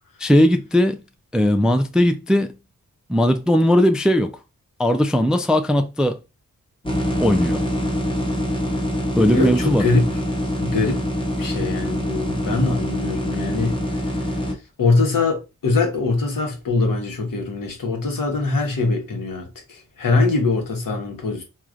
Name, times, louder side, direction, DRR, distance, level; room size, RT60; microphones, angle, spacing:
voice 1, 0.2-1.0 1.3-2.6 3.1-4.3 4.8-6.2 7.2-7.6 9.2-9.8, equal, ahead, 0.3 m, -18 dB
sound 1, 6.8-14.5, equal, 15° left, 0.9 m, -24 dB
voice 2, 9.3-10.1 10.6-11.0 11.4-13.7 14.0-14.1 14.8-21.4, left 3 dB, 70° left, 1.0 m, -22 dB
3.1 x 2.4 x 2.4 m
cardioid pair, 60°, 34 cm